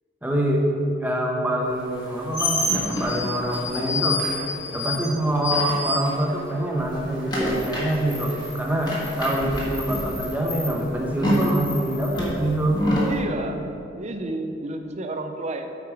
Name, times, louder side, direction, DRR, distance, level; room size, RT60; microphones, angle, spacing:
voice 1, 0.2-0.6 1.0-4.2 4.7-12.8, right 1 dB, 10° right, -1 dB, 0.9 m, -25 dB
sound 1, 1.9-6.5 6.8-13.2, left 1 dB, 20° left, 1.5 m, -27 dB
voice 2, 13.0-13.6 14.0-15.8, right 2 dB, 35° right, 6 dB, 0.5 m, -31 dB
8.2 x 4.8 x 4.9 m, 2.7 s
head